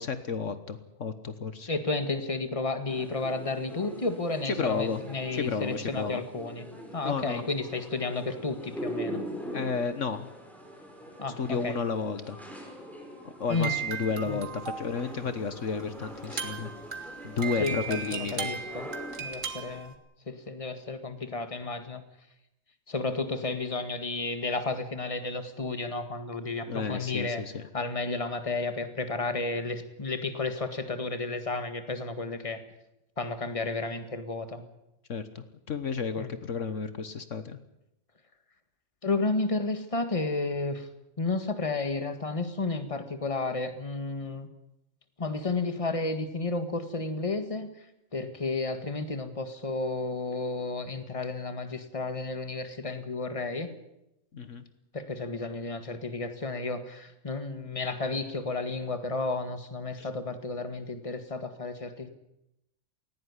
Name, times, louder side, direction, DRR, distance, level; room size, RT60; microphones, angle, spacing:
voice 1, 0.0-1.7 4.4-5.0 5.3-6.2 7.0-7.4 9.5-10.3 11.4-12.4 13.2-16.7 17.0-18.5 26.7-27.6 35.1-37.6 54.3-54.6 60.0-60.1, left 5 dB, 65° left, 11 dB, 1.6 m, -32 dB
voice 2, 1.7-6.6 6.9-9.2 11.2-11.8 13.5-13.7 14.2-14.4 17.6-18.9 19.2-20.0 20.3-22.0 22.9-27.4 27.7-32.6 33.2-34.6 36.2-36.3 39.0-40.9 41.2-44.5 45.2-47.7 48.1-53.7 54.9-62.1, left 3 dB, 25° left, 9 dB, 1.9 m, -32 dB
sound 1, 2.9-19.8, equal, ahead, 5.1 m, -43 dB
sound 2, 13.5-15.2 15.8-15.9 16.2-19.9, right 6 dB, 70° right, 2.5 m, -36 dB
19.0 x 16.5 x 9.8 m, 0.86 s
omnidirectional pair, 1.4 m